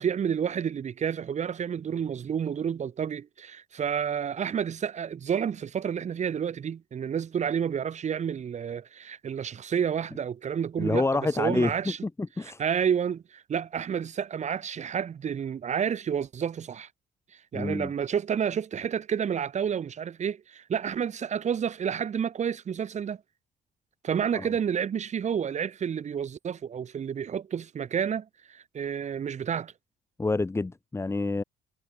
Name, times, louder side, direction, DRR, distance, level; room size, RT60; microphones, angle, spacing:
voice 1, 0.0-12.0 12.4-16.9 17.5-23.2 24.0-29.7, right 8 dB, 45° right, 5.9 m, -30 dB
voice 2, 10.8-11.7 12.0-12.6 17.5-17.9 24.3-24.5 30.2-31.4, left 3 dB, 15° left, 2.6 m, -28 dB
cardioid pair, 110°, 17 cm